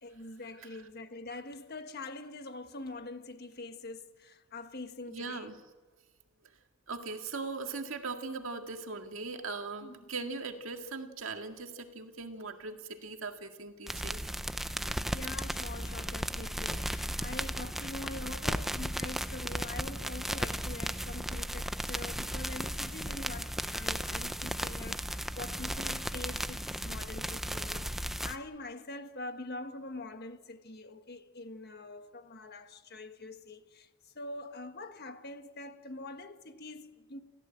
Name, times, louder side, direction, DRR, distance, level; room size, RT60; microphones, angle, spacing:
voice 1, 0.0-5.5 9.8-10.0 15.1-37.2, left 2 dB, 50° left, 1.5 m, -44 dB
voice 2, 5.1-5.6 6.9-14.3, right 4 dB, 70° right, 2.1 m, -40 dB
sound 1, 13.9-28.4, equal, ahead, 0.6 m, -35 dB
29.0 x 14.0 x 8.7 m
head